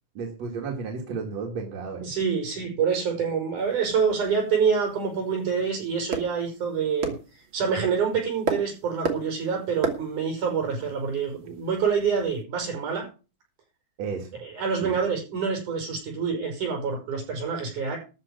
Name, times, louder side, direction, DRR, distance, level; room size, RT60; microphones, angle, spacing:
voice 1, 0.1-2.1 14.0-14.3 14.8-15.0, right 5 dB, 60° right, 1 dB, 3.1 m, -33 dB
voice 2, 2.1-7.1 7.5-13.1 14.4-18.0, right 6 dB, 80° right, 3 dB, 7.2 m, -26 dB
sound 1, 3.6-12.4, right 4 dB, 45° right, 2.5 m, -36 dB
13.5 x 5.2 x 9.1 m, 0.33 s
omnidirectional pair, 3.5 m